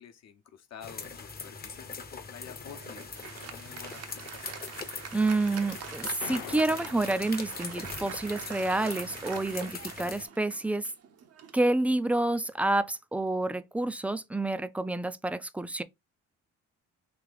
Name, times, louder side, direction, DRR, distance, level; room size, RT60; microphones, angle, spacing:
voice 1, 0.0-4.5, left 8 dB, 60° left, 0.9 m, -49 dB
sound 1, 0.8-10.3, left 4 dB, 30° left, 0.8 m, -42 dB
Applause, 2.7-12.5, right 7 dB, 55° right, 0.7 m, -44 dB
voice 2, 5.1-10.9 11.5-15.8, right 2 dB, 5° right, 0.3 m, -29 dB
sound 2, 6.2-8.2, left 13 dB, 85° left, 0.5 m, -44 dB
3.1 x 2.8 x 3.9 m
cardioid pair, 90°, 30 cm